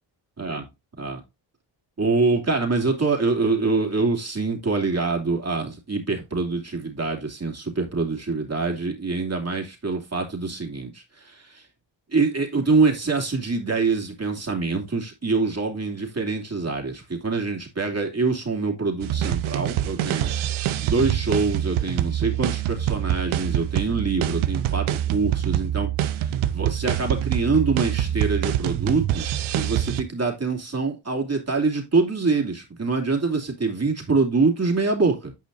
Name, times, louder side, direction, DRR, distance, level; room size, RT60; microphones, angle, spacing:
voice 1, 2.0-11.6 12.1-20.3 20.7-25.9 26.5-35.3, right 4 dB, 35° right, 2.7 m, -25 dB
sound 1, 19.0-30.0, right 11 dB, 85° right, 0.8 m, -25 dB
9.6 x 5.0 x 2.6 m
cardioid pair, 60°, 47 cm